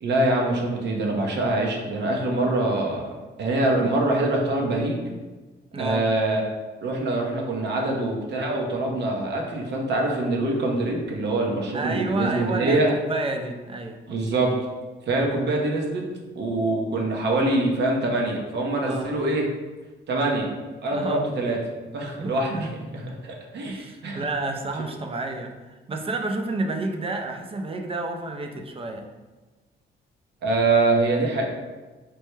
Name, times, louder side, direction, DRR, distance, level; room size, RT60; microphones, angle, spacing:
voice 1, 0.0-3.1 3.4-5.0 5.8-6.4 6.8-12.9 14.1-14.5 15.1-16.0 16.3-19.4 20.1-20.5 20.8-21.6 21.9-22.7 22.9-24.2 30.4-31.4, right 2 dB, 60° right, 0 dB, 0.7 m, -24 dB
voice 2, 5.7-6.1 11.7-14.0 18.9-19.2 20.9-21.3 22.2-22.7 23.7-29.0, right 2 dB, 30° right, 4 dB, 0.5 m, -30 dB
4.4 x 2.1 x 3.2 m, 1.3 s
cardioid pair, 90°, 20 cm